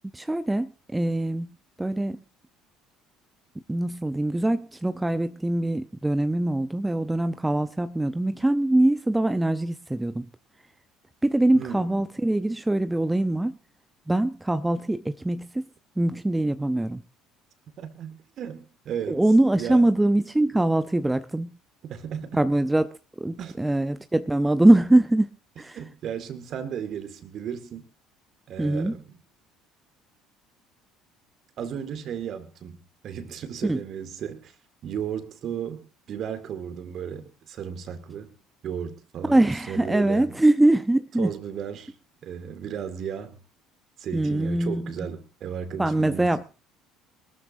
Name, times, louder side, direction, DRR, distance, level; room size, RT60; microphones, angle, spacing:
voice 1, 0.1-1.5 1.8-2.2 3.7-10.3 11.2-13.6 14.1-15.7 16.0-17.0 19.1-21.5 22.3-22.9 23.2-25.3 25.6-25.8 28.6-29.0 33.6-33.8 39.3-41.3 44.1-45.1 45.8-46.4, right 1 dB, 10° right, 0.7 m, -23 dB
voice 2, 11.5-12.0 17.8-19.2 19.6-19.9 21.8-22.4 23.4-23.6 25.7-27.9 28.5-29.2 31.6-34.5 34.8-38.3 38.6-40.3 41.2-41.9 42.2-43.4 44.0-46.4, right 8 dB, 50° right, 2.1 m, -35 dB
24.0 x 13.0 x 2.7 m
figure-of-eight pair, 60°, 0 cm